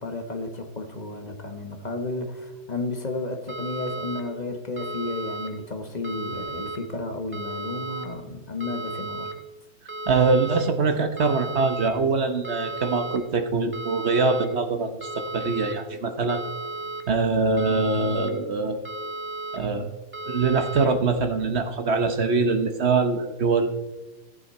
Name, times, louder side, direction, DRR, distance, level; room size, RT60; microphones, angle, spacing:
voice 1, 0.0-9.3, left 2 dB, 35° left, 5 dB, 0.7 m, -32 dB
sound 1, 3.5-4.2 4.8-5.5 6.0-6.8 7.3-8.1 8.6-9.3 9.9-10.6 11.2-11.9 12.4-13.2 13.7-14.5 15.0-15.7 16.3-17.0 17.6-18.3 18.9-19.6 20.1-20.9, right 2 dB, 10° right, 0.8 m, -34 dB
voice 2, 10.1-16.4 17.1-18.8 19.5-19.9 20.2-23.7, right 4 dB, 45° right, 7 dB, 0.9 m, -23 dB
15.5 x 8.8 x 4.2 m, 1.1 s
omnidirectional pair, 2.1 m